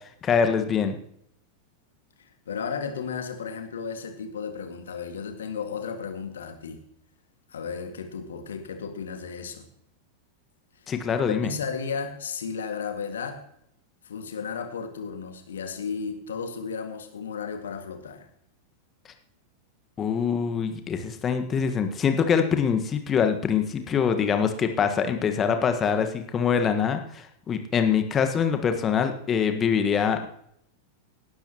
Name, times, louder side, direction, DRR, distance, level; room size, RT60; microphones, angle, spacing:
voice 1, 0.2-0.9 10.9-11.5 20.0-30.3, left 7 dB, 25° left, 7 dB, 1.5 m, -24 dB
voice 2, 2.2-6.8 7.5-9.7 11.3-13.4 14.0-18.3, left 6 dB, 65° left, 6 dB, 1.9 m, -34 dB
19.0 x 12.0 x 3.0 m, 0.70 s
figure-of-eight pair, 90°, 0 cm